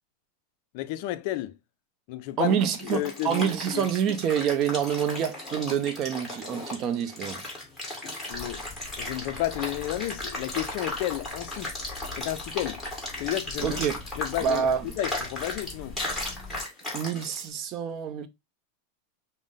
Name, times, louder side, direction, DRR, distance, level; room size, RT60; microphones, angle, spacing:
voice 1, 0.7-1.5 2.1-2.6 2.9-3.9 8.3-8.6 9.0-11.7 12.2-12.8 13.2-13.8 14.2-14.6 15.0-16.0, left 15 dB, 55° left, 0.4 m, -32 dB
sound 1, 2.4-17.5, left 1 dB, 10° left, 1.8 m, -36 dB
voice 2, 2.4-7.4 13.6-14.0 14.4-14.9 16.9-18.3, right 8 dB, 35° right, 0.6 m, -27 dB
sound 2, 8.3-16.6, left 3 dB, 30° left, 2.6 m, -44 dB
5.1 x 2.0 x 3.7 m
supercardioid pair, 140°, 0 cm